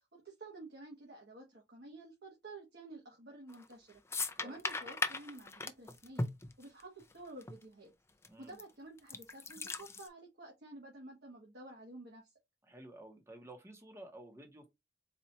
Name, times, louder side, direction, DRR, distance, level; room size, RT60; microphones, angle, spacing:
voice 1, 0.1-4.0 4.4-6.3 6.6-7.9 8.4-12.3, right 2 dB, 70° right, 1.3 m, -51 dB
sound 1, 3.5-3.7 4.1-7.1 7.4-7.5 8.2-8.6 9.0-10.1, left 3 dB, 15° left, 0.4 m, -38 dB
voice 2, 8.3-8.6 12.6-14.7, right 1 dB, 15° right, 1.0 m, -52 dB
4.2 x 2.5 x 4.1 m
head